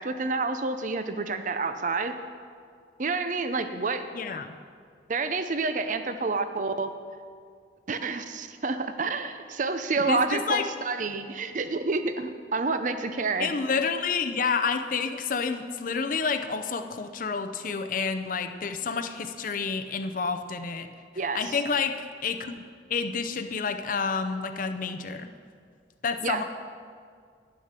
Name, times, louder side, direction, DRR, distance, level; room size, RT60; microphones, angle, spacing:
voice 1, 0.0-2.1 3.0-4.1 5.1-6.9 7.9-13.5 21.2-21.6 26.2-26.4, right 3 dB, 45° right, 9 dB, 0.6 m, -29 dB
voice 2, 4.1-4.5 10.1-10.6 13.4-20.9 21.3-21.9 22.2-22.6 22.9-25.3 26.0-26.4, left 5 dB, 45° left, 8 dB, 0.6 m, -29 dB
10.5 x 6.6 x 6.7 m, 2.1 s
head